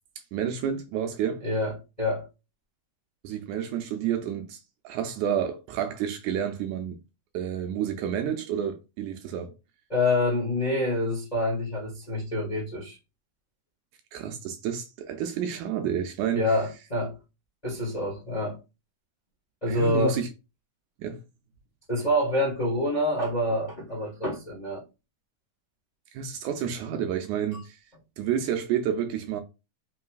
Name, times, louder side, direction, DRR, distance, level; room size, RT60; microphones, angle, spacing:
voice 1, 0.3-1.4 3.2-4.6 4.8-7.0 7.3-9.5 14.1-16.4 19.7-20.3 21.0-21.2 26.1-27.8 28.2-29.4, right 8 dB, 80° right, 1.9 m, -30 dB
voice 2, 1.4-2.3 9.9-13.0 16.3-17.2 17.6-18.6 19.6-20.2 21.9-24.8, left 1 dB, 30° left, 0.7 m, -27 dB
5.4 x 3.1 x 2.3 m
omnidirectional pair, 3.6 m